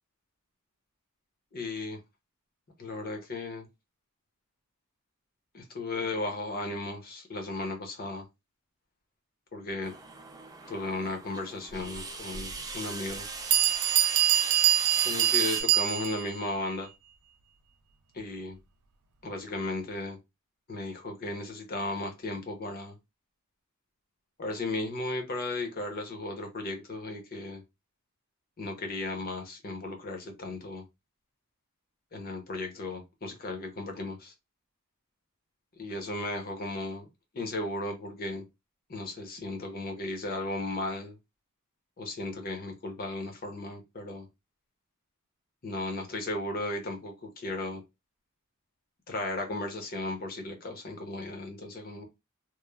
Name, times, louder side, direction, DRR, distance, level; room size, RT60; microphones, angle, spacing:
voice 1, 1.5-2.0 2.8-3.7 5.5-8.3 9.5-9.9 10.7-13.2 15.0-16.9 18.1-18.6 19.2-20.2 20.7-23.0 24.4-27.6 28.6-30.8 32.1-34.3 35.8-37.1 37.3-38.4 38.9-41.2 42.0-44.3 45.6-47.8 49.1-52.0, left 2 dB, 40° left, 0.7 m, -35 dB
sound 1, 9.8-15.6, right 4 dB, 15° right, 0.4 m, -38 dB
Bell, 12.3-12.4 13.1-13.2 13.5-16.3, right 11 dB, 75° right, 0.4 m, -24 dB
3.0 x 2.0 x 2.2 m
head